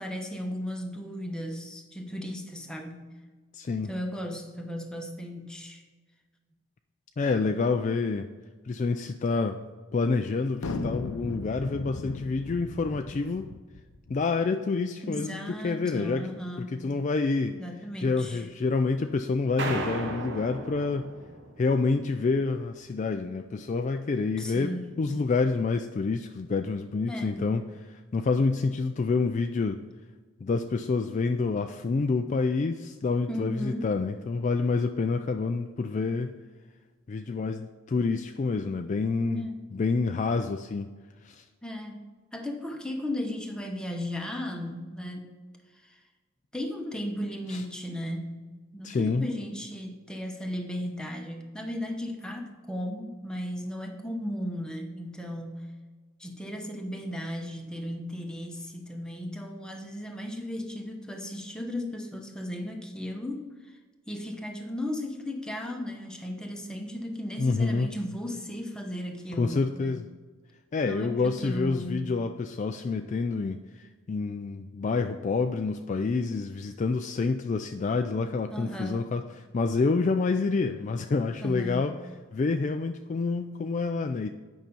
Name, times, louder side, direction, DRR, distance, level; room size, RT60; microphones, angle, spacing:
voice 1, 0.0-3.1 3.8-5.8 15.0-16.8 17.5-18.5 24.4-24.9 27.1-27.5 33.3-33.9 39.2-39.6 41.6-45.3 45.8-46.0 46.5-48.4 48.7-55.8 56.2-63.8 64.1-69.9 70.9-72.0 78.5-79.1 81.4-81.8, left 1 dB, 5° left, 2 dB, 0.9 m, -36 dB
voice 2, 3.5-3.9 7.2-8.3 8.6-9.6 9.9-13.5 14.1-16.3 16.6-17.6 18.0-21.1 21.6-29.8 30.4-36.3 37.1-40.9 41.2-41.4 47.5-47.6 48.8-49.3 67.4-67.9 69.4-70.1 70.7-79.2 79.5-81.9 82.3-84.3, left 4 dB, 35° left, 6 dB, 0.3 m, -28 dB
sound 1, 10.6-14.2, left 3 dB, 80° left, 0.6 m, -36 dB
sound 2, 19.6-22.0, right 2 dB, 55° right, 0.9 m, -35 dB
9.1 x 5.7 x 5.4 m, 1.4 s
head